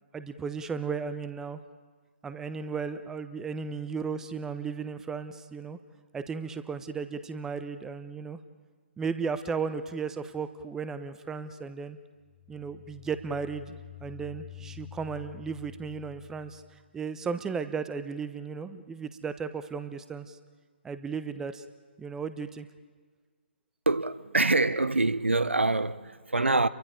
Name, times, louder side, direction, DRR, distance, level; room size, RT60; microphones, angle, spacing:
voice 1, 0.1-1.6 2.2-5.8 6.1-8.4 9.0-12.0 12.5-13.7 14.0-16.6 16.9-20.4 20.8-21.6 22.0-22.7, right 5 dB, 10° right, 0.8 m, -35 dB
sound 1, 12.2-17.0, left 15 dB, 35° left, 1.2 m, -48 dB
voice 2, 23.9-26.7, right 2 dB, 80° right, 0.8 m, -25 dB
30.0 x 23.5 x 5.1 m
figure-of-eight pair, 135°, 6 cm